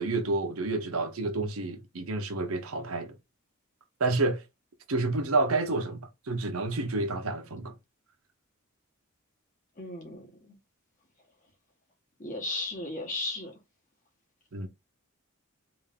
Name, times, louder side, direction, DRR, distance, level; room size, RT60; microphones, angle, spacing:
voice 1, 0.0-3.1 4.0-4.4 4.9-7.8 14.5-14.7, right 3 dB, 85° right, 0.8 m, -29 dB
voice 2, 9.8-10.6 12.2-13.5, left 2 dB, 35° left, 1.4 m, -35 dB
3.5 x 2.6 x 3.5 m
head